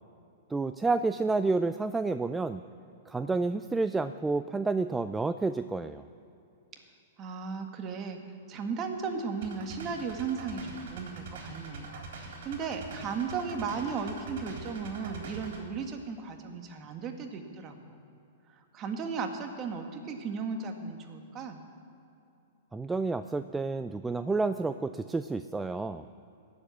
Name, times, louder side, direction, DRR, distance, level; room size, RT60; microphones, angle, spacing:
voice 1, 0.5-2.6 3.1-6.0 22.7-26.0, right 3 dB, 10° right, 11 dB, 0.4 m, -30 dB
voice 2, 7.2-8.2 8.5-11.9 12.2-17.8 18.7-21.6, right 5 dB, 30° right, 4 dB, 1.8 m, -35 dB
sound 1, 9.4-15.6, right 3 dB, 65° right, 3.8 m, -43 dB
17.0 x 7.7 x 8.3 m, 2.8 s
hypercardioid pair, 115°, 0 cm